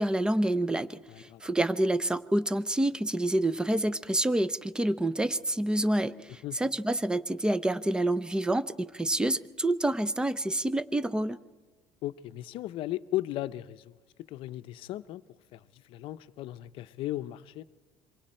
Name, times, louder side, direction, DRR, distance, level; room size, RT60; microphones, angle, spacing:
voice 1, 0.0-11.4, right 1 dB, 10° right, 0.6 m, -28 dB
voice 2, 1.1-1.4 6.4-6.6 12.0-13.9 14.3-15.2 15.5-17.6, left 15 dB, 65° left, 0.6 m, -36 dB
26.5 x 23.5 x 4.4 m
cardioid pair, 120°, 10 cm